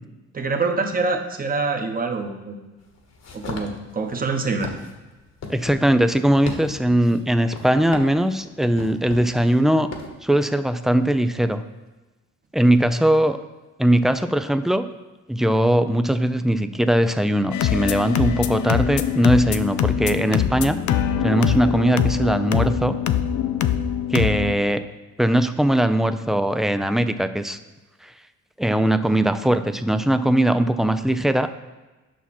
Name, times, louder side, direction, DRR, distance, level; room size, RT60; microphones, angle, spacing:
voice 1, 0.3-2.6 3.3-4.7, right 4 dB, 30° right, 4 dB, 1.2 m, -25 dB
sound 1, 2.8-10.1, left 4 dB, 60° left, 1.6 m, -37 dB
voice 2, 5.5-9.9 10.2-11.6 12.5-13.4 13.8-14.8 15.3-20.8 21.2-23.0 24.1-24.8 25.2-27.6 28.0-28.1 28.6-31.5, right 1 dB, ahead, 10 dB, 0.5 m, -20 dB
sound 2, 17.5-24.6, left 10 dB, 75° left, 0.6 m, -23 dB
9.6 x 5.9 x 4.3 m, 1.1 s
cardioid pair, 90°, 30 cm